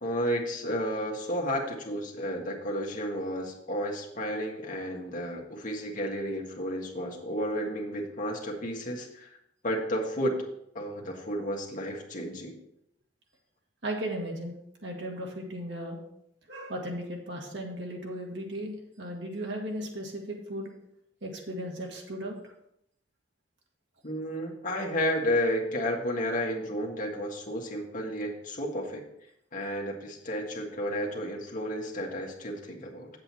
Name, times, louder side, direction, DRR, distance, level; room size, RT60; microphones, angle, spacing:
voice 1, 0.0-9.4 9.6-10.4 10.7-12.5 24.0-29.0 29.5-33.1, equal, 45° left, 0 dB, 1.7 m, -32 dB
voice 2, 13.8-14.5 14.8-16.0 16.5-20.7 21.2-22.4, right 1 dB, 75° right, 0 dB, 2.0 m, -36 dB
8.0 x 7.7 x 4.4 m, 0.77 s
head